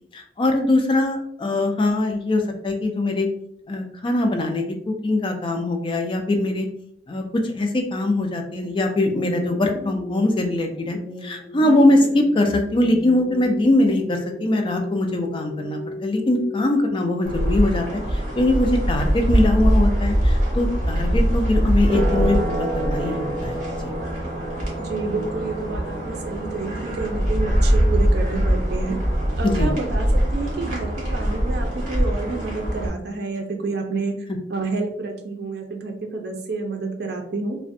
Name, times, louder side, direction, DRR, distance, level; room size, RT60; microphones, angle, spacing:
voice 1, 0.1-3.3 3.7-6.7 7.1-23.9 29.4-29.7, left 1 dB, 25° left, 3 dB, 0.3 m, -22 dB
sound 1, 9.1-18.1, left 3 dB, 85° left, 0.6 m, -36 dB
sound 2, 17.2-32.9, equal, 45° right, 0.9 m, -22 dB
voice 2, 24.8-29.0 29.4-34.2 34.5-37.6, right 3 dB, 60° right, 3 dB, 0.5 m, -29 dB
2.4 x 2.1 x 2.5 m, 0.71 s
head